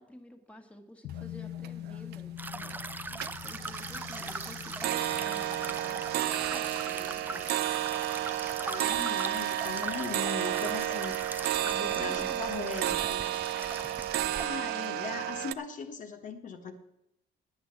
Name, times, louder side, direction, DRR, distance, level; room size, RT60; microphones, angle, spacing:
voice 1, 0.0-3.1 3.4-7.5 11.9-13.2, equal, 5° left, 4 dB, 1.6 m, -50 dB
sound 1, 1.0-10.2 10.5-10.6, left 12 dB, 90° left, 0.7 m, -45 dB
sound 2, 1.2-1.3 1.6-2.2 2.6-2.9 3.2-15.5, right 13 dB, 70° right, 0.5 m, -32 dB
sound 3, 2.4-14.5, right 3 dB, 10° right, 0.4 m, -40 dB
voice 2, 8.6-13.2 14.4-16.7, left 5 dB, 50° left, 5 dB, 1.3 m, -39 dB
9.4 x 8.7 x 7.4 m, 0.83 s
cardioid pair, 110°, 17 cm